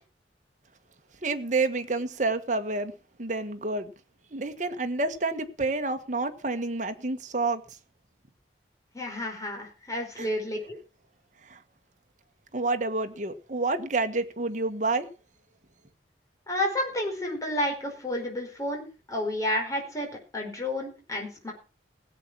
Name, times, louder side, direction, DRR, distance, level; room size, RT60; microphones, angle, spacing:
voice 1, 1.2-2.9 3.2-3.9 4.3-7.6 10.2-10.3 11.4-11.6 12.5-15.1, right 3 dB, 45° right, 1.5 m, -29 dB
voice 2, 8.9-10.8 16.5-20.1 20.3-21.5, left 1 dB, 20° left, 4.9 m, -31 dB
17.0 x 8.5 x 6.1 m
head